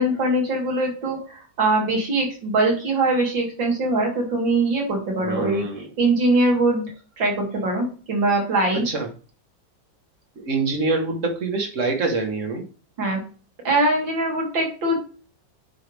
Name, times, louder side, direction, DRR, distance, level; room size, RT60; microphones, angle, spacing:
voice 1, 0.0-5.6 6.0-6.9 7.2-8.8 13.0-13.2 13.6-15.0, right 2 dB, 80° right, 0 dB, 3.2 m, -22 dB
voice 2, 5.2-5.9 8.8-9.1 10.4-12.7, right 3 dB, 45° right, 4 dB, 1.6 m, -25 dB
9.3 x 5.6 x 3.5 m, 0.38 s
omnidirectional pair, 2.0 m